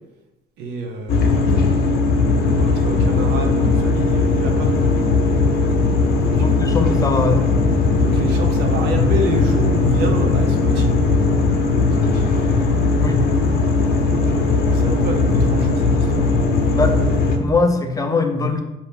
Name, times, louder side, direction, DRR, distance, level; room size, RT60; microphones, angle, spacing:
voice 1, 0.6-5.0 6.2-6.9 8.0-10.9 12.0-12.6 14.1-16.2, right 2 dB, 80° right, 3 dB, 0.8 m, -29 dB
sound 1, 1.1-17.4, left 3 dB, 65° left, 0.7 m, -18 dB
voice 2, 6.3-7.5 13.0-13.3 16.7-17.0 17.4-18.6, left 3 dB, 20° left, 5 dB, 0.4 m, -21 dB
4.4 x 2.8 x 3.5 m, 1.0 s
cardioid pair, 110°, 17 cm